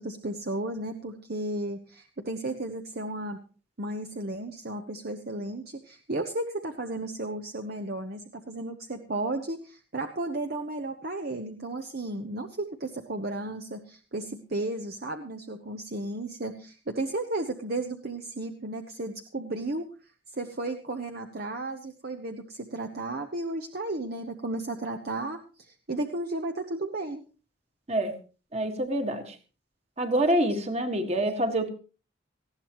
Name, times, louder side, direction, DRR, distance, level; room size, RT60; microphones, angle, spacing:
voice 1, 0.0-3.4 3.8-19.9 20.3-27.2, right 2 dB, 50° right, 5 dB, 1.0 m, -34 dB
voice 2, 28.5-29.4 30.0-31.7, right 1 dB, 30° right, 6 dB, 1.8 m, -26 dB
19.0 x 15.5 x 3.1 m, 0.34 s
head